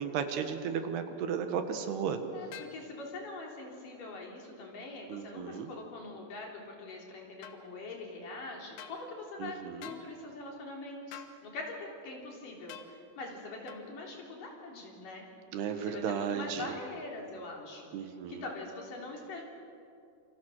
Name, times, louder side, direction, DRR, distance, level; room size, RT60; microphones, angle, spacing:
voice 1, 0.0-2.2 5.1-5.7 9.4-9.9 15.5-16.7 17.9-18.4, right 7 dB, 80° right, 7 dB, 3.5 m, -34 dB
voice 2, 2.3-15.2 15.7-19.4, left 2 dB, 55° left, -1 dB, 4.9 m, -43 dB
sound 1, 2.5-2.8 7.4-7.6 8.8-9.0 9.8-10.1 11.1-11.4 12.7-12.9 13.7-13.9, left 9 dB, 75° left, 3.2 m, -46 dB
27.5 x 26.5 x 6.4 m, 2.5 s
omnidirectional pair, 4.7 m